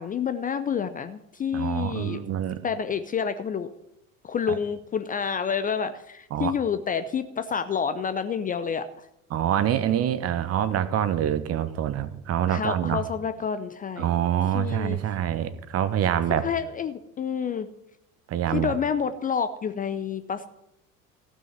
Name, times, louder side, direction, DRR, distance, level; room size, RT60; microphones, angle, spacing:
voice 1, 0.0-2.2 2.6-3.7 4.2-9.1 12.5-14.1 14.5-15.0 16.4-17.7 18.5-20.5, left 7 dB, 20° left, 11 dB, 0.6 m, -29 dB
voice 2, 1.5-2.6 6.3-6.5 9.3-13.0 14.0-16.5 18.3-18.7, right 10 dB, 35° right, 14 dB, 1.1 m, -26 dB
15.0 x 6.3 x 9.4 m, 0.85 s
figure-of-eight pair, 70°, 43 cm